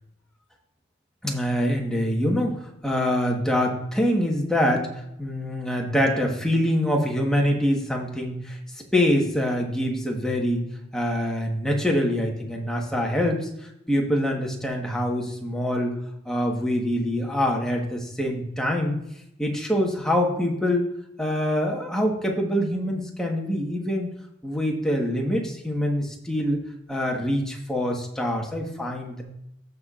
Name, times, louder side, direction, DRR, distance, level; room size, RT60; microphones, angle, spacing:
voice 1, 1.2-4.9 5.2-8.6 8.9-10.6 10.9-16.0 16.2-19.0 19.4-20.8 21.2-24.1 24.4-26.6 26.9-29.2, equal, 5° left, -1 dB, 1.3 m, -25 dB
15.0 x 5.9 x 2.5 m, 0.83 s
head